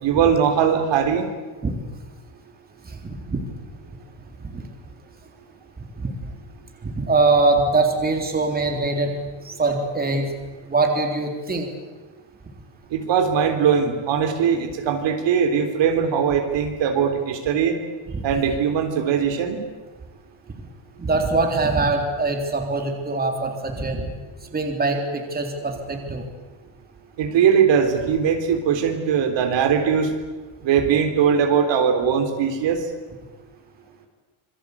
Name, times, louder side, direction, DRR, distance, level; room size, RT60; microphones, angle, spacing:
voice 1, 0.0-1.3 12.9-17.7 18.2-19.6 27.2-30.1 30.6-32.8, right 7 dB, 65° right, 5 dB, 3.5 m, -20 dB
voice 2, 2.8-3.4 4.4-4.6 5.8-6.3 6.8-9.1 9.4-10.3 10.7-11.7 18.1-18.2 21.0-24.1 24.5-26.2, right 3 dB, 20° right, 3 dB, 3.7 m, -23 dB
27.0 x 22.5 x 8.5 m, 1.3 s
cardioid pair, 160°, 48 cm